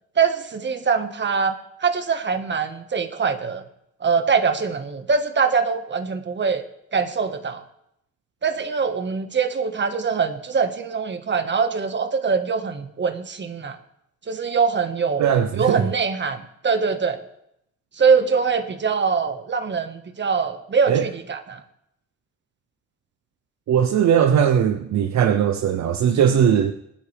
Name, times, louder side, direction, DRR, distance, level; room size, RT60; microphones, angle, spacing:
voice 1, 0.2-1.5 1.8-3.6 4.0-6.6 6.9-7.6 8.4-13.8 14.3-15.2 15.5-17.2 18.0-21.6, right 5 dB, 40° right, 8 dB, 1.6 m, -23 dB
voice 2, 15.2-15.8 20.9-21.1 23.7-26.7, right 8 dB, 65° right, 8 dB, 0.8 m, -19 dB
24.5 x 9.9 x 3.5 m, 0.78 s
cardioid pair, 90°, 30 cm